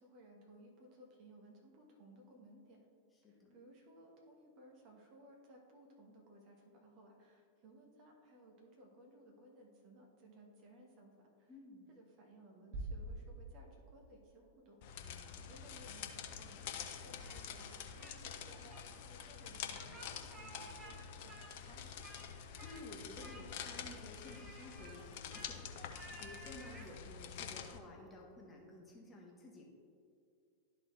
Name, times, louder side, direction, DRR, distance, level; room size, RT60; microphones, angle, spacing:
voice 1, 0.0-2.9 3.3-11.5 11.9-15.1 15.5-16.7 17.0-21.9, right 1 dB, 40° right, 0 dB, 1.3 m, -60 dB
voice 2, 3.2-3.6 11.5-11.9 15.0-15.5 22.4-29.7, left 1 dB, 15° left, -2 dB, 1.3 m, -54 dB
sound 1, 12.7-14.5, right 2 dB, 60° right, 1.3 m, -46 dB
sound 2, 14.8-27.8, left 8 dB, 50° left, 0.6 m, -47 dB
Speech, 17.2-18.2 18.5-18.8 19.7-21.0 21.3-22.3 22.6-22.9 23.2-23.8 24.2-26.9, right 2 dB, 25° right, 1.0 m, -56 dB
12.0 x 4.1 x 3.1 m, 2.3 s
figure-of-eight pair, 90°, 0 cm